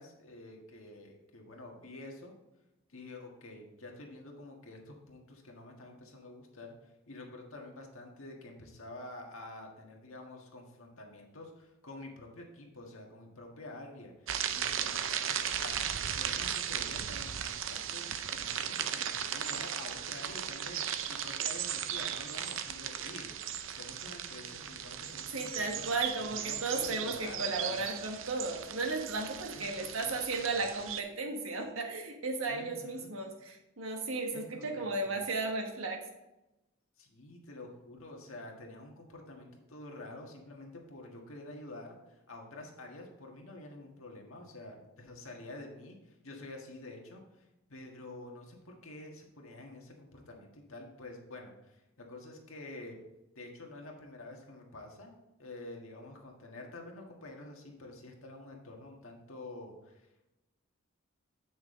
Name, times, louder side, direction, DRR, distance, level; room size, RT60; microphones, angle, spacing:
voice 1, 0.0-2.3 2.9-23.3 23.7-25.9 26.2-27.8 29.5-30.6 32.5-33.1 34.3-35.2 37.0-53.0 53.3-55.1 55.4-60.3, left 2 dB, 80° left, 1 dB, 1.6 m, -48 dB
sound 1, 14.3-31.0, right 9 dB, 70° right, 0.6 m, -37 dB
voice 2, 25.3-36.0, right 3 dB, 85° right, 3 dB, 1.4 m, -35 dB
8.4 x 6.2 x 3.7 m, 0.97 s
head